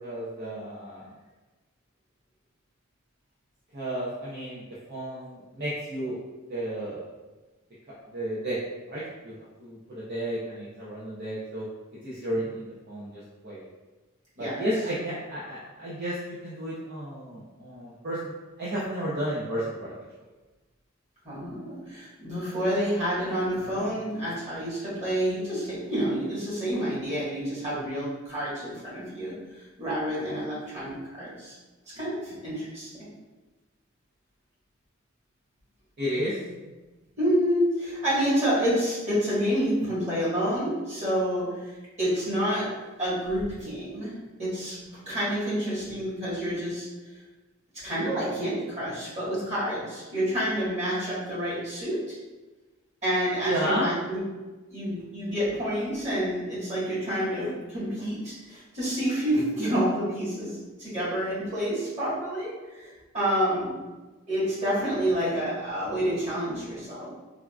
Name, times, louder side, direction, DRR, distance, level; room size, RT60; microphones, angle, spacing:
voice 1, 0.0-1.1 3.7-4.6 4.9-6.2 6.5-7.0 8.1-8.6 8.9-9.3 9.6-11.7 12.0-13.7 14.4-18.3 18.6-19.9 36.0-36.4 53.4-53.9, right 1 dB, 50° right, -8 dB, 0.6 m, -32 dB
voice 2, 21.2-29.3 29.8-31.5 31.9-32.9 37.2-41.5 42.0-42.7 43.0-44.1 44.4-46.9 47.8-52.1 53.0-54.2 54.7-63.8 64.3-67.1, equal, 35° right, -10 dB, 1.5 m, -28 dB
3.4 x 2.3 x 2.3 m, 1.2 s
head